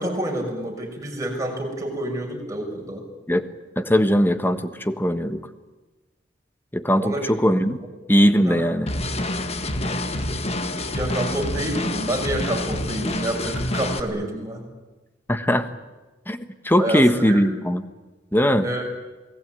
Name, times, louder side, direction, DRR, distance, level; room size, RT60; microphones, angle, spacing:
voice 1, 0.0-3.0 7.0-7.2 8.4-8.6 10.9-14.6 16.8-17.4 18.6-18.9, right 1 dB, 15° right, 1 dB, 6.4 m, -28 dB
voice 2, 3.8-5.4 6.7-7.8 8.1-8.9 15.3-15.7 16.3-17.8 18.3-18.6, equal, 10° left, 10 dB, 1.4 m, -20 dB
sound 1, 8.9-14.0, left 1 dB, 35° left, 1.8 m, -27 dB
28.5 x 19.5 x 9.2 m, 1.2 s
head